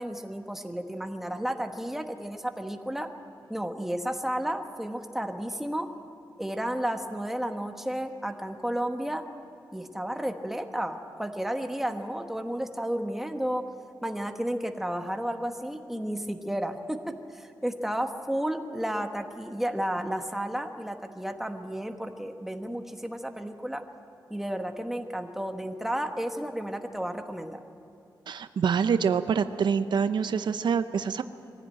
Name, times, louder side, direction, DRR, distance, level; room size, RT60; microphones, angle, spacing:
voice 1, 0.0-3.1 3.5-5.9 6.4-9.2 9.7-13.6 14.0-17.0 17.3-23.8 24.3-27.6, equal, 5° right, 5 dB, 1.2 m, -32 dB
voice 2, 28.3-31.2, right 6 dB, 75° right, 10 dB, 0.7 m, -26 dB
22.5 x 15.5 x 9.1 m, 2.8 s
wide cardioid pair, 140°, 8 cm